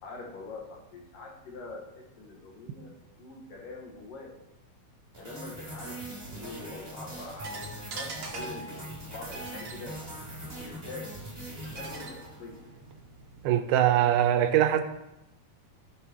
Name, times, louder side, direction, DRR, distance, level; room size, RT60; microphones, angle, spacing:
voice 1, 0.0-4.3 5.2-7.6 7.9-10.0 10.6-11.2 11.5-12.6, left 3 dB, 65° left, 2.8 m, -44 dB
sound 1, 5.1-12.7, right 1 dB, 10° right, 2.1 m, -42 dB
sound 2, 7.4-13.4, right 2 dB, 55° right, 1.6 m, -44 dB
voice 2, 13.4-14.8, right 11 dB, 85° right, 2.5 m, -22 dB
15.5 x 6.3 x 2.9 m
omnidirectional pair, 4.4 m